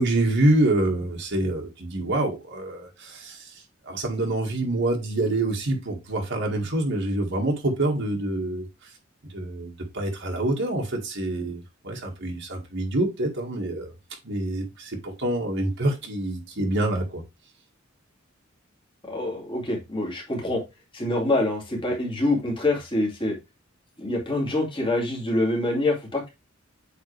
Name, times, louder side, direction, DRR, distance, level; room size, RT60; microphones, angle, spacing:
voice 1, 0.0-3.5 3.9-8.9 9.3-13.9 14.2-17.2, right 1 dB, 60° right, 2.0 m, -26 dB
voice 2, 19.1-20.6 20.9-23.3 24.0-26.3, left 2 dB, 25° left, 2.5 m, -25 dB
8.3 x 4.2 x 3.3 m
head